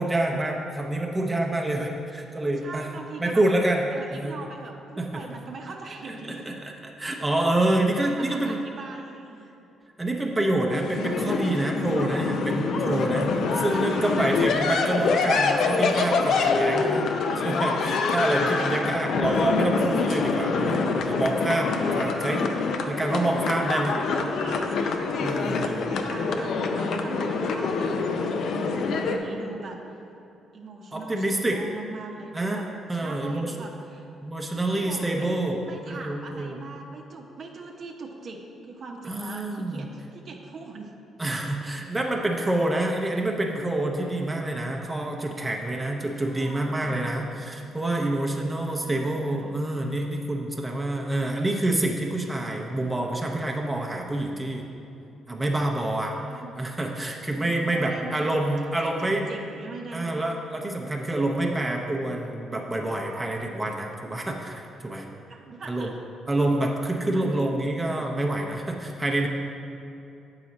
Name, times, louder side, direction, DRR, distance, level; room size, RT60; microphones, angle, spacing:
voice 1, 0.0-2.9 3.2-3.8 4.1-4.4 5.0-5.2 6.1-8.6 10.0-22.4 22.9-23.9 25.2-26.0 30.9-31.6 32.3-32.6 32.9-33.5 34.2-36.6 39.0-39.9 41.2-54.7 55.3-56.1 56.6-59.2 59.9-65.1 65.7-65.9 66.3-69.3, right 1 dB, 15° right, 0 dB, 0.7 m, -27 dB
voice 2, 2.4-3.4 3.9-6.4 7.6-7.7 8.0-9.6 13.6-14.3 14.8-15.4 18.5-19.4 21.9-22.5 23.1-29.8 30.5-32.7 32.9-34.1 34.5-40.9 46.2-47.1 48.8-49.5 56.1-56.7 57.3-58.3 58.6-60.1 61.5-61.8 65.3-66.0 67.1-67.7, right 3 dB, 55° right, 1 dB, 0.7 m, -41 dB
sound 1, 10.7-29.2, left 4 dB, 70° left, 0.5 m, -25 dB
7.5 x 4.9 x 4.1 m, 2.7 s
cardioid pair, 90°, 0 cm